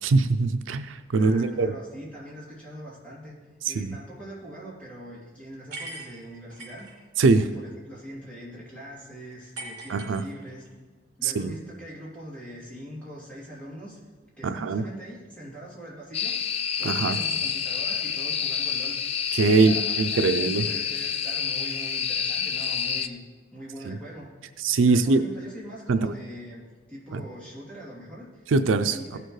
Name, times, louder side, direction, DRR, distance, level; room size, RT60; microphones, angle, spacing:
voice 1, 0.0-1.7 3.6-3.9 7.2-7.4 9.9-10.2 11.2-11.5 14.4-14.8 16.8-17.2 19.3-20.7 23.9-24.0 24.6-25.2 25.9-26.1 27.1-27.2 28.5-29.2, right 3 dB, 90° right, 9 dB, 0.4 m, -22 dB
voice 2, 1.2-3.4 3.7-7.1 7.3-10.7 11.2-14.0 14.4-19.0 19.4-23.2 23.5-24.3 24.9-28.5 28.8-29.2, equal, 5° left, -9 dB, 2.9 m, -42 dB
sound 1, 5.7-6.9 9.5-10.7, right 2 dB, 65° right, 3.1 m, -40 dB
sound 2, 16.1-23.1, left 7 dB, 30° left, 0.3 m, -28 dB
16.0 x 6.7 x 3.2 m, 1.4 s
head